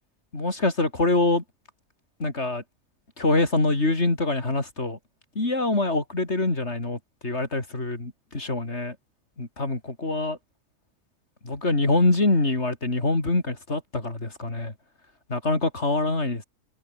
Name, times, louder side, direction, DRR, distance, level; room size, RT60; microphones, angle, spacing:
voice 1, 0.3-1.4 2.2-2.6 3.2-5.0 5.4-9.0 9.4-10.4 11.4-14.7 15.3-16.4, left 2 dB, 55° left, 4.3 m, -25 dB
omnidirectional pair, 1.4 m